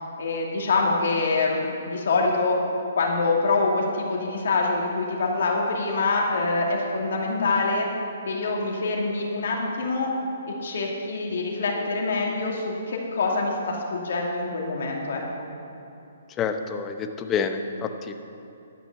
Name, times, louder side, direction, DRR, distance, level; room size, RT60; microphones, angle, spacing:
voice 1, 0.2-2.6 3.0-7.9 8.3-10.1 10.6-15.2, left 3 dB, 65° left, -1 dB, 2.5 m, -25 dB
voice 2, 16.4-18.1, left 6 dB, 20° left, 7 dB, 0.8 m, -28 dB
12.0 x 6.0 x 8.1 m, 2.8 s
hypercardioid pair, 145°, 0 cm